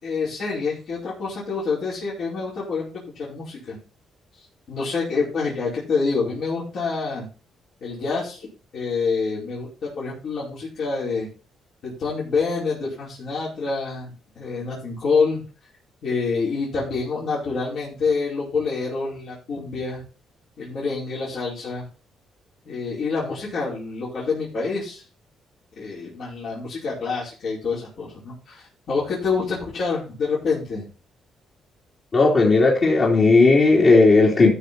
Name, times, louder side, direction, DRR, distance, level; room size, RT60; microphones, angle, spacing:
voice 1, 0.0-2.9 3.1-3.8 4.7-7.3 7.8-8.5 8.7-11.3 11.8-15.4 16.0-20.0 20.6-21.8 22.6-25.0 25.8-30.8, left 4 dB, 65° left, -7 dB, 4.9 m, -27 dB
voice 2, 32.1-34.5, left 3 dB, 45° left, -4 dB, 3.2 m, -15 dB
13.5 x 6.6 x 4.2 m, 0.35 s
cardioid pair, 90°, 0 cm